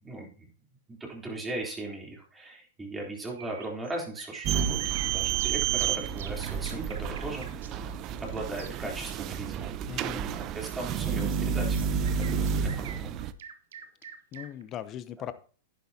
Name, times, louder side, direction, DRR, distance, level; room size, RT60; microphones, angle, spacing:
voice 1, 0.0-0.5 0.9-7.9 8.2-11.8 12.2-13.1, right 2 dB, 10° right, -1 dB, 3.4 m, -38 dB
sound 1, 3.2-8.7 11.3-11.4 11.7-14.6, right 8 dB, 75° right, 1.2 m, -45 dB
sound 2, 4.4-13.3, right 7 dB, 40° right, 0.7 m, -30 dB
voice 2, 9.9-10.3 14.3-15.3, left 10 dB, 35° left, 13 dB, 0.7 m, -39 dB
10.5 x 10.0 x 2.8 m, 0.40 s
hypercardioid pair, 120°, 0 cm